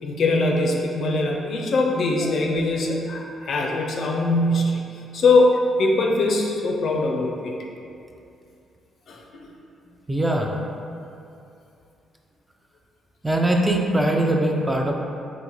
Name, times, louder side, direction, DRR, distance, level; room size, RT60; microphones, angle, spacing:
voice 1, 0.0-7.6 9.1-9.5, left 2 dB, 60° left, 0 dB, 0.4 m, -22 dB
voice 2, 10.1-10.5 13.2-14.9, right 1 dB, 10° right, 1 dB, 0.3 m, -21 dB
3.9 x 2.4 x 2.9 m, 2.6 s
cardioid pair, 90°, 0 cm